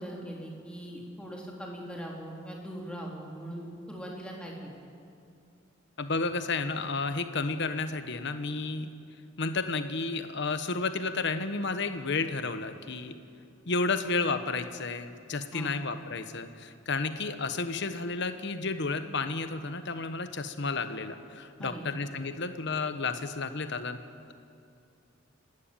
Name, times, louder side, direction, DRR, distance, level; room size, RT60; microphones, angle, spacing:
voice 1, 0.0-4.7 15.5-15.7 21.6-21.8, equal, 5° left, -2 dB, 3.5 m, -40 dB
voice 2, 6.0-8.9 9.4-13.2 13.7-24.0, left 3 dB, 60° left, 9 dB, 1.2 m, -32 dB
28.5 x 12.5 x 9.0 m, 2.4 s
head